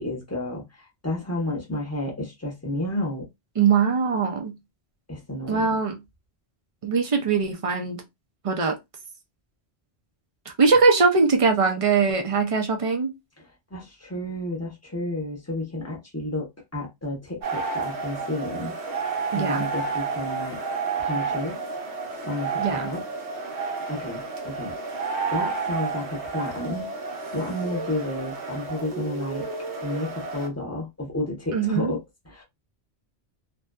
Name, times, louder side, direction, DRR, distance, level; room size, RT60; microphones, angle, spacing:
voice 1, 0.0-3.3 5.1-5.8 13.7-18.8 19.3-20.6 21.0-21.6 22.2-23.0 23.5-24.7 25.3-26.9 27.3-29.5 29.8-32.4, left 1 dB, 15° left, 0.7 m, -31 dB
voice 2, 3.6-4.6 5.5-6.0 6.8-8.0 8.4-8.8 10.6-13.1 19.3-19.7 22.6-22.9 31.5-31.9, right 5 dB, 50° right, 0.4 m, -21 dB
sound 1, 17.4-30.5, right 4 dB, 90° right, 1.0 m, -31 dB
2.6 x 2.2 x 2.2 m
omnidirectional pair, 1.1 m